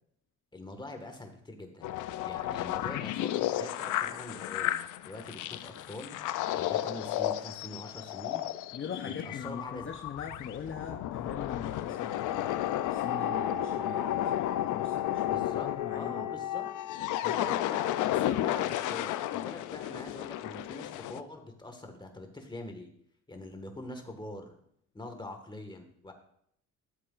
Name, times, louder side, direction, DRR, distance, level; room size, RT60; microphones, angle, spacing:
voice 1, 0.5-1.9 2.2-6.2 6.5-8.5 9.0-9.9 15.2-16.7 17.2-22.9 23.3-24.6 24.9-26.1, left 2 dB, 15° left, 5 dB, 1.6 m, -44 dB
sound 1, 1.8-21.2, left 12 dB, 80° left, 0.5 m, -33 dB
voice 2, 8.7-12.5 12.9-14.3 14.6-16.3, left 7 dB, 40° left, 4 dB, 0.8 m, -41 dB
13.0 x 7.7 x 2.5 m, 0.68 s
cardioid pair, 90°, 30 cm